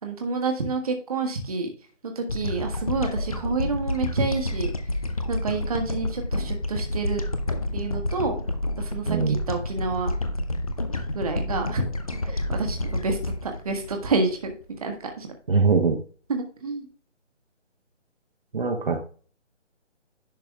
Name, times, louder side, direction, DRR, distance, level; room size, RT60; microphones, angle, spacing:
voice 1, 0.0-1.7 2.0-4.7 5.3-7.2 7.7-8.4 8.8-10.1 11.1-11.8 12.2-14.5 14.8-15.3 16.3-16.9, right 4 dB, 30° right, 3 dB, 1.4 m, -28 dB
sound 1, 2.3-14.8, left 1 dB, 30° left, 0.7 m, -29 dB
voice 2, 9.1-9.4 15.5-16.0 18.5-19.0, right 4 dB, 50° right, 2 dB, 1.3 m, -22 dB
10.5 x 4.7 x 3.4 m, 0.40 s
figure-of-eight pair, 165°, 36 cm